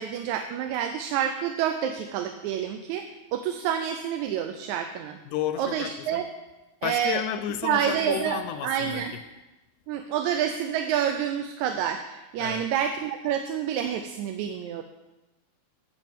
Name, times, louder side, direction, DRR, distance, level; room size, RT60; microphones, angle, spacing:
voice 1, 0.0-3.1 3.3-5.2 5.6-6.2 6.8-7.2 7.6-9.1 9.9-14.8, right 9 dB, 80° right, 6 dB, 2.0 m, -28 dB
voice 2, 5.3-6.2 6.8-9.0 12.4-12.6, left 11 dB, 85° left, 10 dB, 2.1 m, -32 dB
9.1 x 7.9 x 7.5 m, 1.1 s
omnidirectional pair, 3.4 m